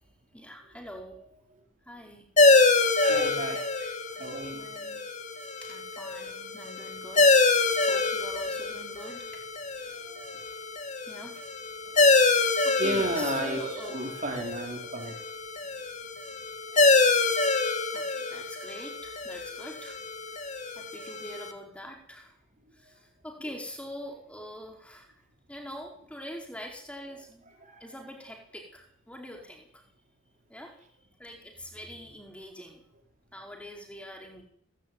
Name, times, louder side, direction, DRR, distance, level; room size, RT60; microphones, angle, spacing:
voice 1, 0.3-1.2 1.8-2.3 2.6-2.7 4.5-5.0 5.6-9.4 9.7-10.0 10.3-10.6 11.1-11.4 11.8-14.0 17.9-20.0 20.3-22.4 22.7-25.2 25.5-27.5 27.8-29.8 30.5-30.7 31.2-32.8 33.3-34.4, equal, 5° left, 1 dB, 4.6 m, -44 dB
sound 1, 2.4-21.5, left 3 dB, 35° left, 2.5 m, -26 dB
voice 2, 2.8-3.9 4.2-4.6 10.0-10.4 12.8-15.1 23.4-23.5 27.6-27.8, right 1 dB, 35° right, 1 dB, 4.9 m, -33 dB
18.5 x 15.5 x 9.7 m, 0.64 s
head